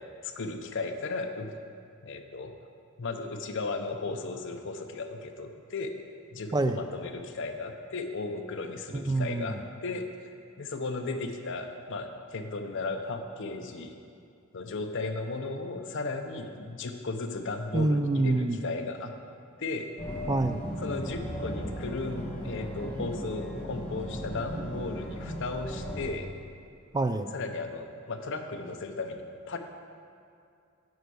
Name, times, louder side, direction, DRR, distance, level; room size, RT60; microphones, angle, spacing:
voice 1, 0.0-1.5 2.0-2.6 3.0-5.9 6.3-10.3 10.6-13.9 14.5-19.1 19.6-19.9 20.8-26.3 27.3-29.6, left 3 dB, 55° left, 5 dB, 0.7 m, -35 dB
voice 2, 8.9-9.6 17.7-18.6 20.3-20.6 26.9-27.3, right 2 dB, 20° right, 8 dB, 0.3 m, -26 dB
sound 1, 20.0-26.1, equal, 5° left, 1.4 m, -36 dB
7.9 x 5.2 x 6.9 m, 2.4 s
head